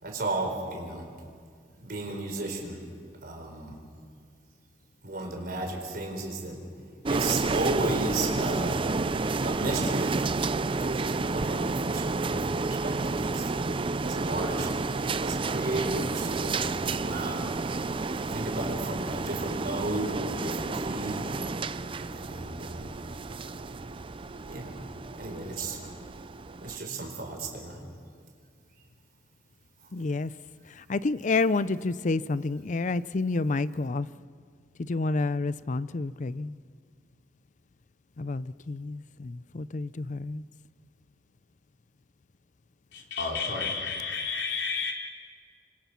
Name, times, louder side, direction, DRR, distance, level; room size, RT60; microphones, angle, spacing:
voice 1, 0.0-1.1 1.8-2.8 3.2-3.8 5.0-6.6 7.1-9.0 9.4-10.2 10.7-14.7 15.2-17.6 18.1-21.2 21.7-21.8 22.1-23.1 24.5-24.8 25.2-25.9 26.6-27.8, right 2 dB, 60° right, 3 dB, 4.2 m, -34 dB
sound 1, 7.1-26.8, right 3 dB, 30° right, 0.5 m, -30 dB
voice 2, 29.9-30.3 30.6-34.1 34.8-36.6 38.2-40.4, left 3 dB, 45° left, 17 dB, 0.5 m, -29 dB
voice 3, 42.9-44.9, left 5 dB, 80° left, 0 dB, 3.8 m, -31 dB
26.5 x 24.5 x 5.8 m, 2.1 s
head